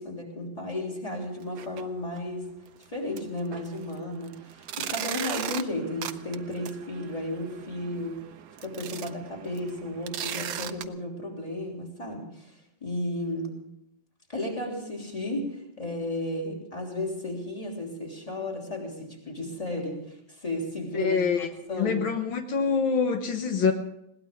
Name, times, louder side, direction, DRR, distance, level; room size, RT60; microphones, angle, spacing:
voice 1, 0.0-2.5 2.9-8.2 8.6-12.5 12.8-13.5 14.3-22.0, left 1 dB, 15° left, -1 dB, 3.2 m, -34 dB
sound 1, 1.4-1.8 2.1-2.2 2.8-2.9 3.2-10.8, right 10 dB, 65° right, 1.0 m, -38 dB
voice 2, 20.9-21.5 21.8-23.7, left 5 dB, 80° left, 5 dB, 1.9 m, -25 dB
21.0 x 18.0 x 3.6 m, 0.80 s
omnidirectional pair, 2.2 m